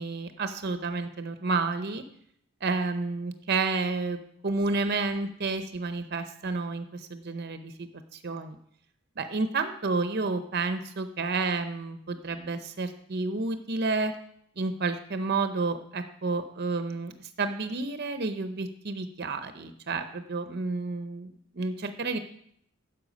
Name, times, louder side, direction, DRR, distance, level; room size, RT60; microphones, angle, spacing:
voice 1, 0.0-2.0 2.6-8.6 9.2-14.1 14.6-22.2, right 3 dB, 50° right, 8 dB, 0.7 m, -30 dB
9.9 x 7.3 x 5.2 m, 0.68 s
head